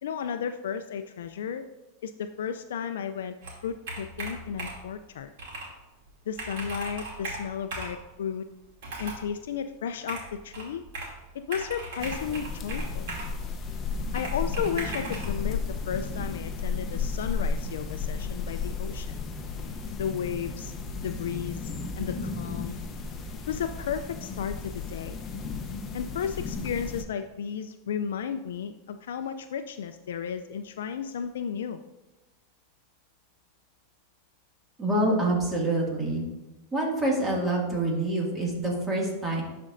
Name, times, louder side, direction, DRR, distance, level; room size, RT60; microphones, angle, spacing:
voice 1, 0.0-1.7 2.0-3.4 3.6-5.3 6.3-8.4 9.0-10.8 11.3-13.1 14.1-19.1 20.0-20.7 21.0-21.7 22.0-22.8 23.5-25.2 25.9-31.8, left 7 dB, 85° left, 8 dB, 0.3 m, -33 dB
Computer keyboard, 3.4-4.9 5.4-5.7 6.1-6.2 6.4-8.0 8.8-9.3 10.1-11.2 11.5-13.3 14.1-15.3, right 2 dB, 70° right, 2.5 m, -37 dB
sound 1, 12.0-27.0, left 4 dB, 25° left, 0.7 m, -33 dB
voice 2, 34.8-36.3 36.7-39.4, right 1 dB, 15° right, -2 dB, 2.0 m, -26 dB
11.5 x 4.3 x 2.5 m, 1.0 s
supercardioid pair, 130°, 0 cm